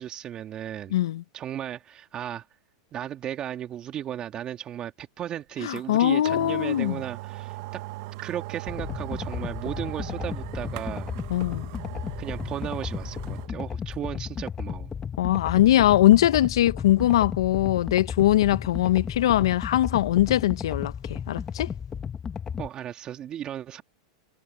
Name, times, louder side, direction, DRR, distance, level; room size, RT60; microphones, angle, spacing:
voice 1, 0.0-0.9 1.3-2.5 2.9-7.8 8.2-11.1 12.2-14.9 22.6-23.8, right 10 dB, 35° right, 2.0 m, -35 dB
voice 2, 0.9-1.2 5.6-7.0 11.3-11.7 15.2-21.7, left 13 dB, 75° left, 1.2 m, -21 dB
sound 1, 5.8-5.9 6.2-13.5 13.9-14.0, right 19 dB, 60° right, 1.5 m, -39 dB
sound 2, 8.7-22.7, left 7 dB, 25° left, 1.9 m, -34 dB
hypercardioid pair, 110°, 3 cm